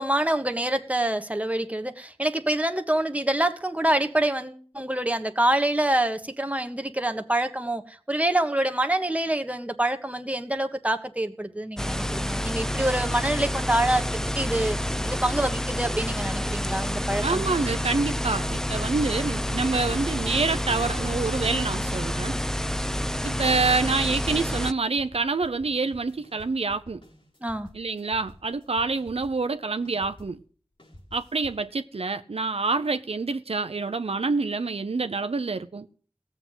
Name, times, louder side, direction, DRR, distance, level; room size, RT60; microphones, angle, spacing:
voice 1, 0.0-14.8 15.0-17.4 27.4-27.7, right 1 dB, 15° right, 1.5 m, -26 dB
sound 1, 11.8-24.7, equal, 5° left, 0.7 m, -28 dB
voice 2, 17.2-22.4 23.2-27.0 27.7-30.4 31.1-35.9, right 3 dB, 85° right, 0.7 m, -27 dB
sound 2, 20.4-30.4 30.8-31.7, left 1 dB, 60° left, 4.4 m, -51 dB
16.5 x 7.6 x 8.0 m
wide cardioid pair, 50°, 10 cm